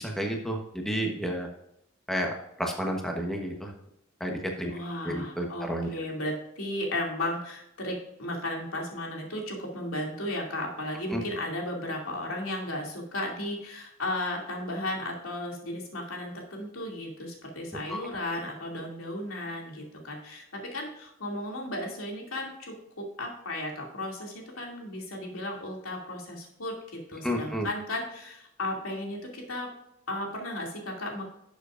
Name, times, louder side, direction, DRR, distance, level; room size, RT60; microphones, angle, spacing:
voice 1, 0.0-1.5 2.1-2.3 2.6-3.7 4.2-4.7 5.0-5.9 11.1-11.2 17.9-18.0 27.2-27.7, equal, ahead, 1 dB, 1.1 m, -31 dB
voice 2, 4.7-29.7 30.1-31.2, left 1 dB, 85° left, -1 dB, 2.6 m, -35 dB
12.0 x 7.2 x 2.5 m, 0.79 s
head